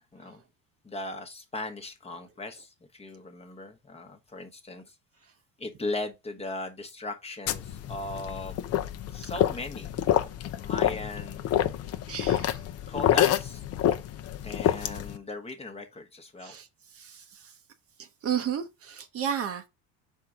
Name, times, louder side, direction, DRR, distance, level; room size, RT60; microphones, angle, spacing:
voice 1, 0.8-4.9 5.6-8.7 9.1-10.3 10.6-11.4 12.9-13.6 14.4-16.5, left 2 dB, 15° left, 1.1 m, -38 dB
sound 1, 7.5-15.2, left 11 dB, 45° left, 0.7 m, -28 dB
voice 2, 12.1-12.6 16.4-16.7 16.9-17.5 18.0-19.7, right 8 dB, 40° right, 0.9 m, -33 dB
5.8 x 4.6 x 3.6 m
cardioid pair, 130°, 34 cm